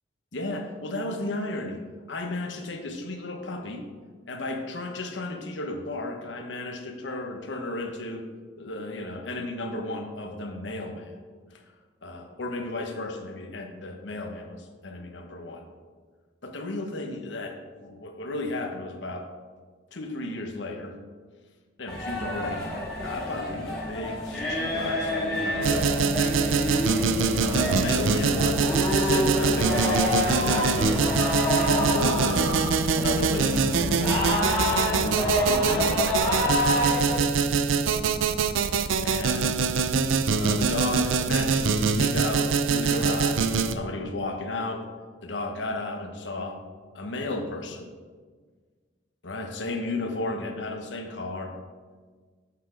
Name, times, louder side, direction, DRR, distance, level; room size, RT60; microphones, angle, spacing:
voice 1, 0.3-1.8 2.1-3.9 4.3-8.3 8.6-11.1 11.5-11.6 12.0-15.7 16.4-19.3 19.9-21.0 21.8-22.7 23.0-26.1 27.4-31.1 31.6-34.4 34.9-36.7 39.0-39.6 40.3-44.8 45.2-46.6 46.9-47.9 49.2-51.5, left 2 dB, 65° left, 4 dB, 1.0 m, -34 dB
sound 1, 21.9-37.2, left 1 dB, 5° left, 2.0 m, -28 dB
Musical instrument, 25.4-37.2, left 2 dB, 65° right, 2.3 m, -36 dB
sound 2, 25.6-43.7, right 5 dB, 85° right, 0.5 m, -24 dB
8.0 x 5.9 x 4.9 m, 1.5 s
head